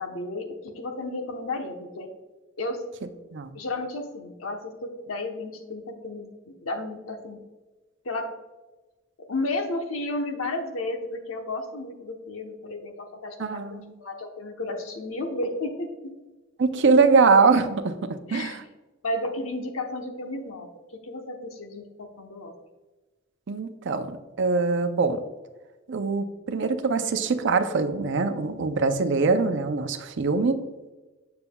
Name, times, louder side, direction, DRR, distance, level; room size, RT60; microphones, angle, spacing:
voice 1, 0.0-2.1 2.6-2.8 3.5-7.4 8.0-8.3 9.2-16.1 18.3-18.6 19.0-20.7 21.0-22.5, left 2 dB, 80° left, 4 dB, 1.0 m, -33 dB
voice 2, 13.4-13.9 16.6-17.9 18.3-18.6 23.5-25.2 25.9-30.6, right 4 dB, 60° right, 9 dB, 0.5 m, -23 dB
7.0 x 6.8 x 2.3 m, 1.2 s
head